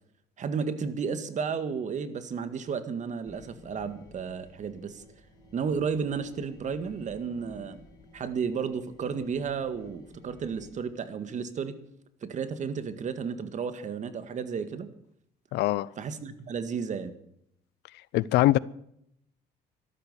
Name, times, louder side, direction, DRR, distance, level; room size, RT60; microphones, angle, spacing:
voice 1, 0.4-5.0 5.5-7.8 8.1-11.8 12.2-14.9 16.0-17.1, right 6 dB, 45° right, 1.9 m, -33 dB
sound 1, 3.3-10.7, left 2 dB, 25° left, 5.1 m, -54 dB
voice 2, 15.5-15.9 18.1-18.6, left 16 dB, 80° left, 0.6 m, -22 dB
13.5 x 13.0 x 6.9 m
cardioid pair, 110°, 17 cm